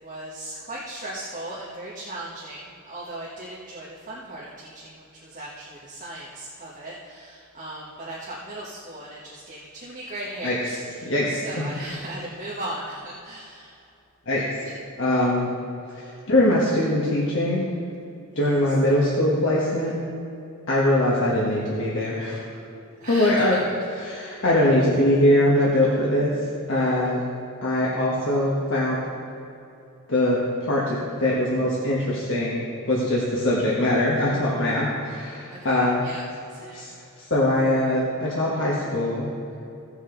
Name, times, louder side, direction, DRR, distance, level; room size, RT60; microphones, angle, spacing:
voice 1, 0.0-13.9 14.6-14.8 18.3-18.8 23.0-23.7 23.9-24.4 35.5-36.2 36.5-36.8, right 1 dB, 35° right, -6 dB, 1.3 m, -38 dB
voice 2, 11.0-11.7 14.3-14.4 15.0-15.5 15.9-17.7 18.3-19.9 20.7-22.4 23.1-23.6 24.0-26.3 26.7-27.2 27.6-29.0 30.1-32.6 32.9-36.0 36.7-39.3, left 1 dB, 55° left, -5 dB, 1.4 m, -22 dB
16.5 x 6.3 x 3.9 m, 2.7 s
head